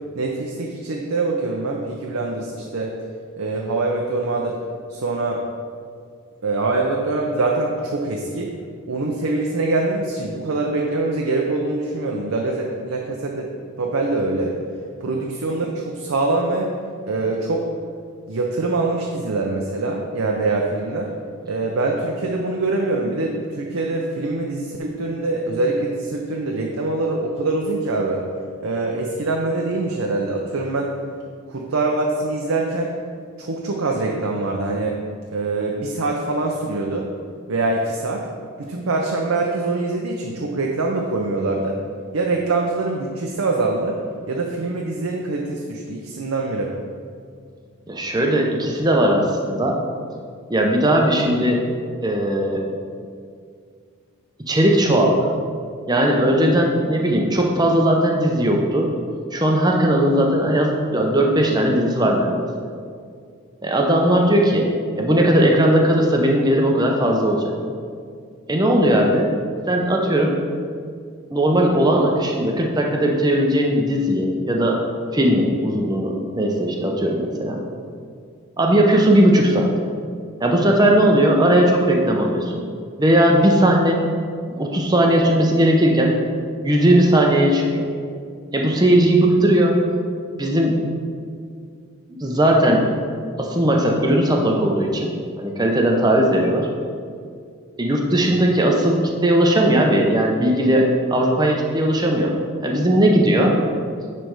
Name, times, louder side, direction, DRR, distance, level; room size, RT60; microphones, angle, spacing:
voice 1, 0.1-2.9 3.4-4.6 4.9-5.4 6.4-8.5 8.8-13.5 13.8-14.5 15.0-16.7 17.0-17.6 18.3-21.1 21.5-28.3 28.6-31.0 31.5-32.9 33.4-35.0 35.3-37.1 37.5-38.3 38.6-41.8 42.1-44.0 44.3-46.7 98.3-98.4, right 2 dB, 75° right, 0 dB, 0.6 m, -24 dB
voice 2, 47.9-49.8 50.5-51.6 52.0-52.6 54.5-55.3 55.9-58.9 59.3-62.5 63.6-64.7 65.0-67.4 68.5-69.3 69.7-70.4 71.3-74.8 75.1-77.6 78.6-79.7 80.4-82.6 83.0-84.0 84.5-86.1 86.6-87.9 88.5-89.8 90.4-90.8 92.2-92.9 93.4-95.1 95.4-96.7 97.8-102.3 102.6-103.6, right 1 dB, 20° right, 0 dB, 0.6 m, -18 dB
10.0 x 3.4 x 4.7 m, 2.2 s
head